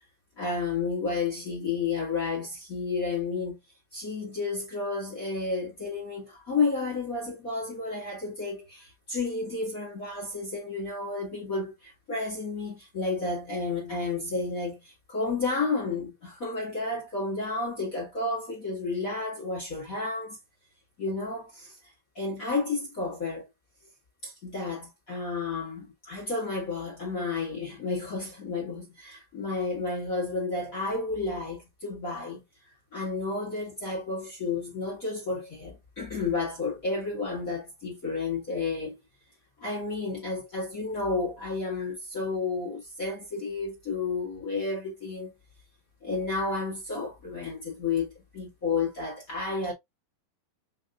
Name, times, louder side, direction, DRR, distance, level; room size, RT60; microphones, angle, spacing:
voice 1, 0.4-3.6 3.9-20.4 21.0-21.9 22.1-23.5 24.2-32.4 32.9-39.0 39.6-45.3 46.0-49.7, left 3 dB, 35° left, 1.6 m, -31 dB
5.4 x 3.1 x 2.5 m
omnidirectional pair, 4.0 m